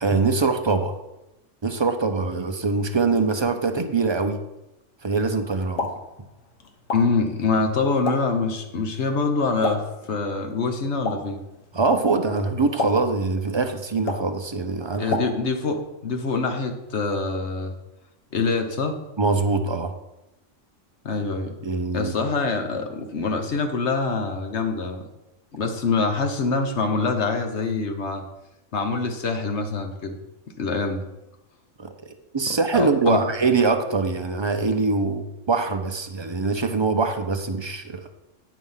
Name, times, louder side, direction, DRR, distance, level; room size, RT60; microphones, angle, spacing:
voice 1, 0.0-0.9 1.6-4.4 5.0-5.9 11.7-15.2 19.2-20.0 21.6-22.1 31.8-38.0, right 4 dB, 35° right, 6 dB, 0.5 m, -23 dB
Explosion, 5.5-15.8, left 3 dB, 80° left, 1.5 m, -35 dB
voice 2, 6.9-11.4 15.0-17.7 18.3-19.0 21.0-21.6 21.9-25.1 25.5-28.2 28.7-30.2 30.6-31.0 32.5-33.2, left 4 dB, 60° left, 5 dB, 1.2 m, -25 dB
9.2 x 4.9 x 5.6 m, 0.93 s
omnidirectional pair, 1.3 m